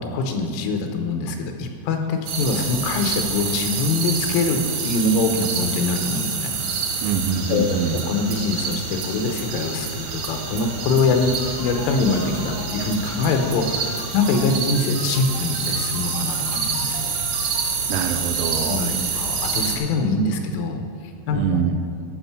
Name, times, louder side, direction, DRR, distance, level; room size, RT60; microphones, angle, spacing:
voice 1, 0.0-6.6 7.5-17.1 18.7-21.6, left 3 dB, 85° left, 4 dB, 3.4 m, -24 dB
sound 1, 2.3-19.8, right 5 dB, 70° right, 3.0 m, -27 dB
voice 2, 7.0-8.0 17.5-18.9 21.3-21.8, right 6 dB, 85° right, 8 dB, 3.2 m, -25 dB
sound 2, 11.4-17.6, left 2 dB, 45° left, 1.4 m, -37 dB
14.0 x 6.3 x 6.0 m, 2.4 s
omnidirectional pair, 5.9 m